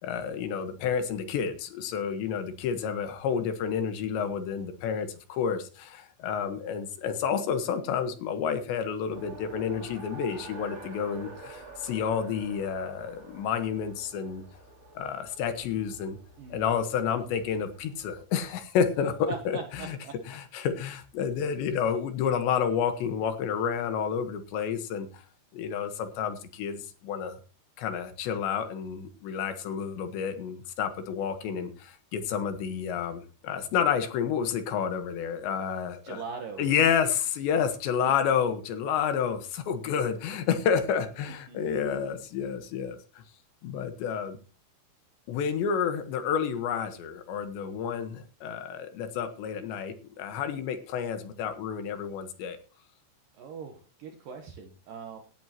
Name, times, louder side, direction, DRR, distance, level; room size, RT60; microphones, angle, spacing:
voice 1, 0.0-14.4 15.0-16.2 16.5-20.0 20.3-25.2 25.5-27.4 27.8-36.2 36.6-43.0 43.6-44.4 45.3-52.6, left 7 dB, 70° left, 9 dB, 3.5 m, -30 dB
Race car auto racing, 9.1-18.2, right 2 dB, 20° right, 2.9 m, -47 dB
voice 2, 16.4-16.7 19.3-20.4 36.0-36.7 41.5-41.6 53.3-55.2, right 5 dB, 70° right, 4 dB, 2.2 m, -41 dB
18.0 x 11.0 x 3.0 m, 0.36 s
omnidirectional pair, 5.5 m